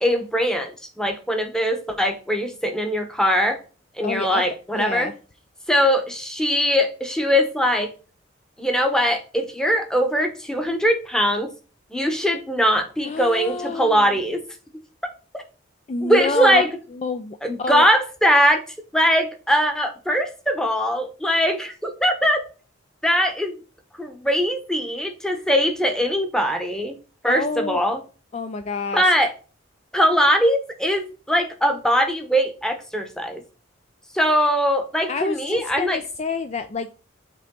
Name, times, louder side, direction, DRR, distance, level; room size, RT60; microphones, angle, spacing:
voice 1, 0.0-3.6 4.0-5.1 5.7-7.9 8.6-11.5 11.9-14.4 15.3-15.4 16.0-16.7 17.4-18.6 18.9-22.4 23.0-23.6 24.0-27.0 27.2-28.0 28.9-29.3 29.9-33.4 34.1-36.0, equal, 5° left, 5 dB, 0.9 m, -21 dB
voice 2, 4.0-4.4 4.7-5.1 13.0-14.1 15.9-16.7 16.9-17.9 27.2-27.8 28.3-29.1 35.1-36.9, left 3 dB, 35° left, 8 dB, 0.4 m, -28 dB
7.5 x 3.5 x 3.7 m, 0.36 s
head